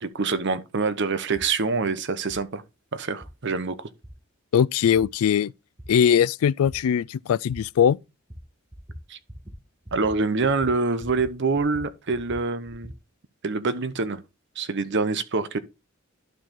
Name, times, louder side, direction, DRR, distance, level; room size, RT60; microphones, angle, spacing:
voice 1, 0.0-2.6 2.9-3.9 9.1-9.2 9.9-12.9 13.4-14.2 14.6-15.6, right 4 dB, 55° right, 0.8 m, -26 dB
sound 1, 1.3-1.5 2.3-2.4 3.2-3.3 4.0-4.1 5.0-5.1 5.8-5.9 6.7-6.8 7.5-7.6 8.3-8.4 8.7-9.0 9.3-9.6 9.8-10.1 10.4-11.3 11.6-13.0, equal, 20° right, 1.5 m, -42 dB
voice 2, 4.5-5.5 5.9-8.0, left 8 dB, 80° left, 0.3 m, -20 dB
11.5 x 4.6 x 3.7 m
head